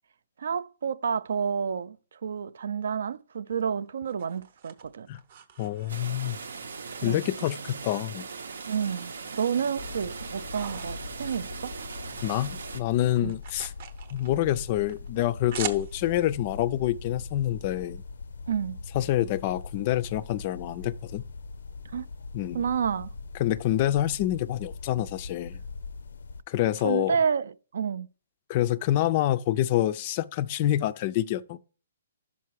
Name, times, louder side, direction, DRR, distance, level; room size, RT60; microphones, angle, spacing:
voice 1, 0.4-2.0 2.2-5.1 7.0-7.2 8.7-11.7 13.2-13.4 18.5-18.8 21.9-22.1 22.5-23.1 26.8-28.1, right 7 dB, 70° right, 0.3 m, -30 dB
sound 1, 3.5-6.4 6.9-8.0 8.3-9.3 9.7-12.3 12.5-16.3, right 8 dB, 45° right, 0.7 m, -43 dB
voice 2, 5.6-6.4 7.0-8.2 12.2-13.7 14.1-18.0 18.9-21.2 22.3-22.6 23.4-25.6 26.5-27.2 28.5-31.6, left 13 dB, 30° left, 0.3 m, -27 dB
sound 2, 5.9-12.8, right 5 dB, 90° right, 0.7 m, -40 dB
sound 3, 9.8-26.4, left 4 dB, 90° left, 0.5 m, -41 dB
5.6 x 5.2 x 4.6 m
hypercardioid pair, 165°, 0 cm